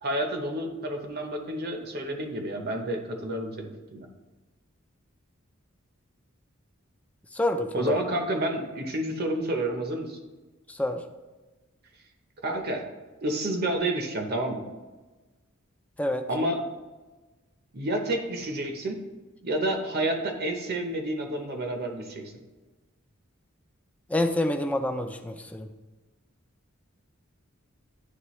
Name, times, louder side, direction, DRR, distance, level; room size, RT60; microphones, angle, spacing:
voice 1, 0.0-4.1 7.7-10.2 12.4-12.8 13.2-14.6 16.3-16.6 17.7-19.0 19.4-22.3, right 1 dB, 50° right, 4 dB, 0.8 m, -29 dB
voice 2, 7.3-8.0 10.7-11.0 16.0-16.2 24.1-25.7, left 1 dB, 5° left, 6 dB, 0.4 m, -27 dB
9.6 x 3.2 x 3.1 m, 1.2 s
head